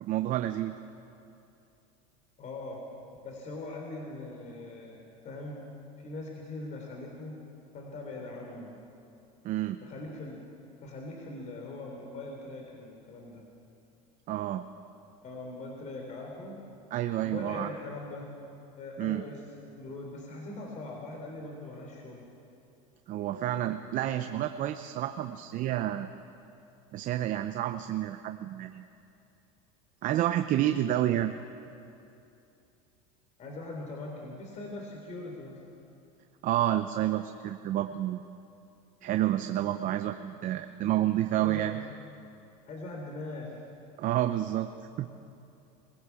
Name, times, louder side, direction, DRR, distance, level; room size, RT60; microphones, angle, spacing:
voice 1, 0.0-0.8 9.4-9.8 14.3-14.6 16.9-17.7 19.0-19.2 23.1-26.1 26.9-28.8 30.0-31.3 36.4-38.2 39.0-41.8 44.0-44.7 45.0-45.1, right 13 dB, 45° right, 8 dB, 0.8 m, -29 dB
voice 2, 2.4-2.8 3.2-5.6 6.0-7.4 7.7-8.7 9.8-10.4 10.8-13.4 15.2-16.6 17.2-18.3 18.7-19.4 19.7-22.2 33.4-35.6 41.3-41.8 42.7-43.7, left 2 dB, 40° left, 0 dB, 3.7 m, -41 dB
22.5 x 16.0 x 7.1 m, 2.8 s
supercardioid pair, 120°, 18 cm